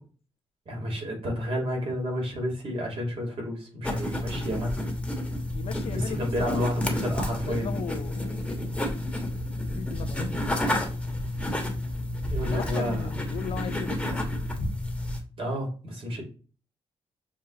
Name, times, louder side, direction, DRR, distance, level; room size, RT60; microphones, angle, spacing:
voice 1, 0.7-4.8 5.9-7.7 12.3-13.1 15.4-16.2, equal, 60° right, 1.9 m, -31 dB
sound 1, 3.8-15.2, left 1 dB, 10° left, 1.3 m, -30 dB
voice 2, 5.5-6.6 7.5-8.4 9.7-10.4 12.5-14.3, left 7 dB, 70° left, 0.7 m, -37 dB
6.9 x 2.4 x 2.9 m
cardioid pair, 105°, 10 cm